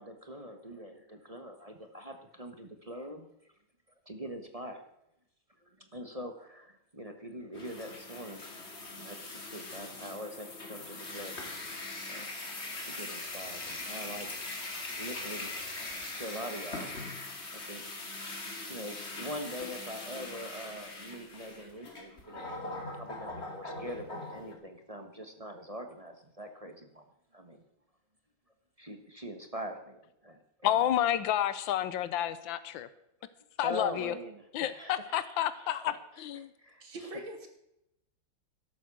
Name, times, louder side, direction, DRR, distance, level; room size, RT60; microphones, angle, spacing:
voice 1, 0.0-3.3 4.1-4.8 5.6-8.6 8.9-11.4 12.1-12.3 12.8-14.3 15.0-15.5 15.8-15.9 16.1-16.9 17.5-17.8 18.7-27.0 27.3-27.6 28.8-30.8 33.2-33.3 33.6-37.1, equal, 20° right, 1.2 m, -43 dB
sound 1, 7.5-24.5, left 2 dB, 35° left, 2.7 m, -41 dB
voice 2, 30.6-32.9 33.6-34.1 34.5-35.9 36.2-36.5, left 11 dB, 90° left, 1.5 m, -30 dB
voice 3, 36.8-37.5, right 1 dB, 85° right, 3.1 m, -42 dB
13.0 x 12.0 x 6.2 m
omnidirectional pair, 2.0 m